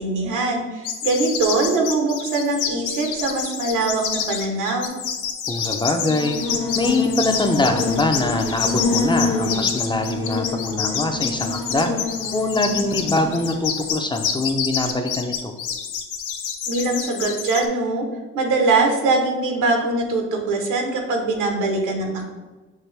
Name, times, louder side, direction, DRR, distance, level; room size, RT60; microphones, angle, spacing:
voice 1, 0.0-4.9 16.7-18.0 18.3-22.3, right 3 dB, 90° right, 2 dB, 0.9 m, -22 dB
sound 1, 0.8-17.7, left 7 dB, 80° left, 0.6 m, -28 dB
voice 2, 5.5-6.4 6.8-11.9 12.3-15.5, left 2 dB, 15° left, 5 dB, 0.4 m, -23 dB
Buzz, 5.8-13.9, left 3 dB, 50° left, 0.9 m, -27 dB
5.9 x 2.6 x 3.2 m, 1.2 s
cardioid pair, 90°, 30 cm